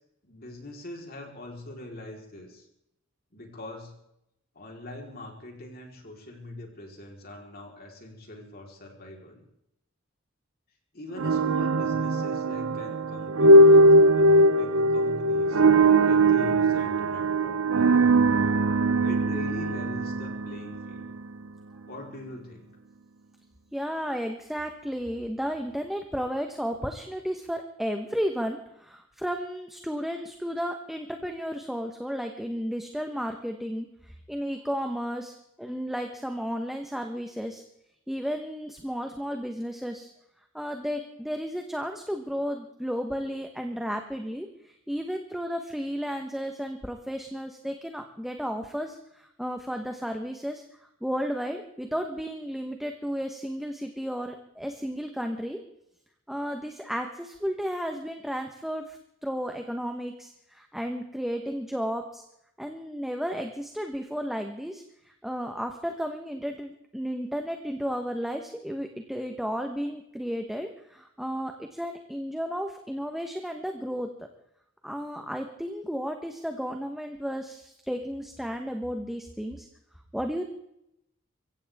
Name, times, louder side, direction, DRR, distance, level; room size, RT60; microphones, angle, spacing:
voice 1, 0.2-2.7 3.3-3.9 4.6-9.4 10.9-13.9 14.1-15.6 16.0-18.0 19.0-21.1 21.9-22.7, left 1 dB, 50° left, 1 dB, 4.0 m, -42 dB
sound 1, 11.2-21.3, right 1 dB, 75° right, 0.8 m, -20 dB
voice 2, 23.7-37.6 38.1-40.1 40.5-50.6 51.0-55.6 56.3-62.2 62.6-74.1 74.8-79.7 80.1-80.5, equal, ahead, 4 dB, 1.1 m, -33 dB
24.0 x 16.0 x 3.6 m, 0.80 s
head